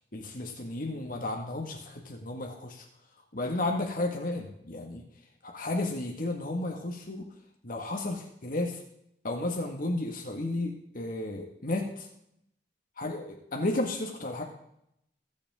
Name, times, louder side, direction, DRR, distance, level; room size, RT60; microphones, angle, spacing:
voice 1, 0.1-2.9 3.3-5.0 5.4-7.2 7.6-8.8 9.2-12.1 13.0-14.4, left 2 dB, 55° left, 1 dB, 1.9 m, -33 dB
22.0 x 8.6 x 3.7 m, 0.75 s
head